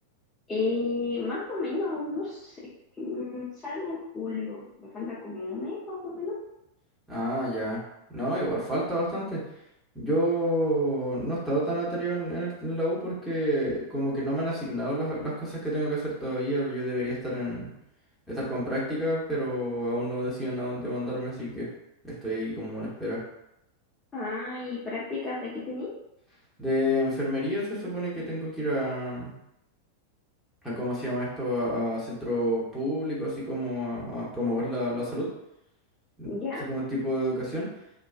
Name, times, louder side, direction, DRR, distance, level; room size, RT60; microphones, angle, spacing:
voice 1, 0.5-2.6 3.0-6.3 24.1-25.9 36.2-36.6, left 3 dB, 20° left, -8 dB, 0.5 m, -32 dB
voice 2, 7.1-7.8 8.1-9.4 9.9-17.7 18.3-21.7 22.0-23.2 26.6-29.3 30.6-35.3 36.2-36.3 36.6-37.7, equal, ahead, -8 dB, 1.0 m, -29 dB
2.3 x 2.3 x 2.4 m, 0.84 s
figure-of-eight pair, 90°, 0 cm